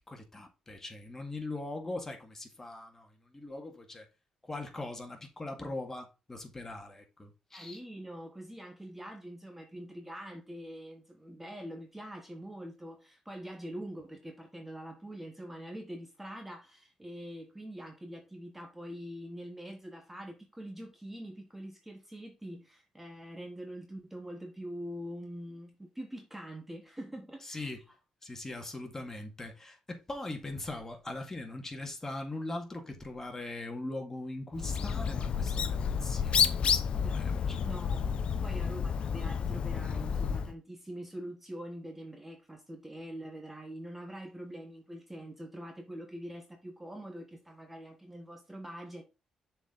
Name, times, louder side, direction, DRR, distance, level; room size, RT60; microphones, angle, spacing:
voice 1, 0.1-4.1 4.4-7.8 27.4-27.8 28.2-36.9 37.1-37.7 38.5-38.6, left 2 dB, 20° left, 2.1 m, -41 dB
voice 2, 7.5-27.7 36.9-49.0, equal, 10° right, 1.4 m, -44 dB
Bird, 34.5-40.5, left 7 dB, 60° left, 0.7 m, -30 dB
6.9 x 4.6 x 3.9 m
cardioid pair, 75°, 2 cm